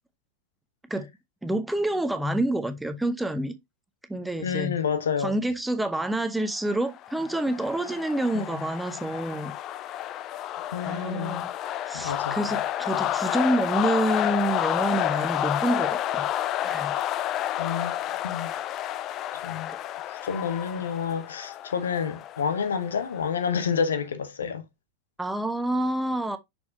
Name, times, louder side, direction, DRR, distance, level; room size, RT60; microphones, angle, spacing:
voice 1, 1.4-3.5 4.1-4.7 5.2-9.5 10.8-11.5 11.9-16.3 16.6-16.9 19.7-19.8 25.2-26.4, right 1 dB, 5° right, 0.9 m, -28 dB
voice 2, 4.4-5.3 8.3-8.4 10.7-11.5 11.9-12.6 17.6-17.9 18.2-18.5 19.4-19.7 20.1-24.6, left 6 dB, 65° left, 1.2 m, -29 dB
sound 1, 6.9-23.5, left 12 dB, 35° left, 0.6 m, -30 dB
6.3 x 5.9 x 2.7 m
figure-of-eight pair, 90°, 0 cm